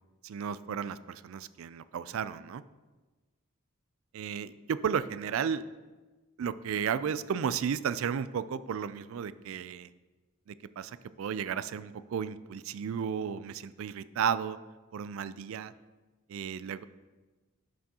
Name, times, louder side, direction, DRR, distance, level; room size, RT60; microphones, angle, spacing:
voice 1, 0.2-2.6 4.1-5.6 6.4-9.9 10.5-14.6 14.9-15.7 16.3-16.8, right 7 dB, 65° right, 15 dB, 0.3 m, -33 dB
11.0 x 6.0 x 2.8 m, 1.2 s
head